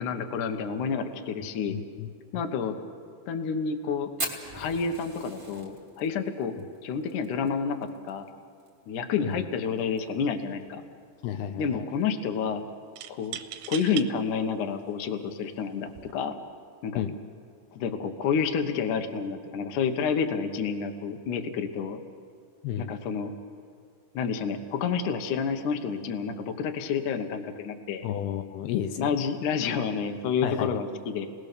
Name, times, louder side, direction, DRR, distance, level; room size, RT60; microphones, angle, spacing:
voice 1, 0.0-1.8 2.3-2.8 3.3-4.1 4.5-6.5 6.8-8.3 8.9-10.8 11.6-12.6 13.1-13.4 13.7-16.4 16.8-17.0 17.7-22.0 22.8-23.3 24.1-28.1 29.0-31.3, left 6 dB, 65° left, 6 dB, 2.3 m, -29 dB
voice 2, 1.7-2.1 9.2-9.4 11.2-11.9 17.0-17.2 22.6-22.9 28.0-29.2 30.4-30.7, left 10 dB, 80° left, 7 dB, 2.7 m, -32 dB
Fire, 4.2-8.7 8.9-9.0 9.3-9.4 9.8-10.2 10.7-10.8 11.9-12.0, right 2 dB, 15° right, 2.2 m, -38 dB
sound 1, 9.8-10.1 10.4-11.0 13.0-14.1 14.8-14.9 15.8-16.1, right 12 dB, 75° right, 2.5 m, -39 dB
30.0 x 19.5 x 6.8 m, 2.2 s
omnidirectional pair, 4.7 m